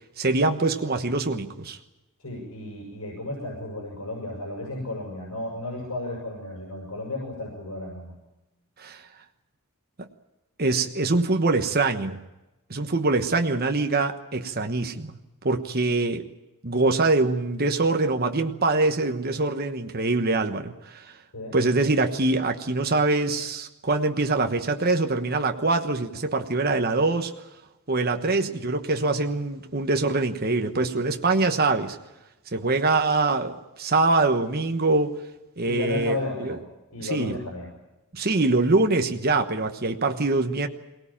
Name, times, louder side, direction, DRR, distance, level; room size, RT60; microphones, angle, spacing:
voice 1, 0.2-1.8 8.8-9.0 10.0-10.1 10.6-12.2 12.7-15.1 15.4-16.3 16.6-21.1 21.5-27.3 27.9-32.0 32.5-35.1 35.6-36.5 37.0-37.4 38.1-40.7, right 3 dB, 45° right, 5 dB, 1.2 m, -24 dB
voice 2, 2.2-8.1 21.3-21.6 28.1-28.3 35.6-36.6 36.9-37.7, left 2 dB, 85° left, -2 dB, 6.5 m, -33 dB
23.0 x 18.5 x 8.8 m, 0.99 s
head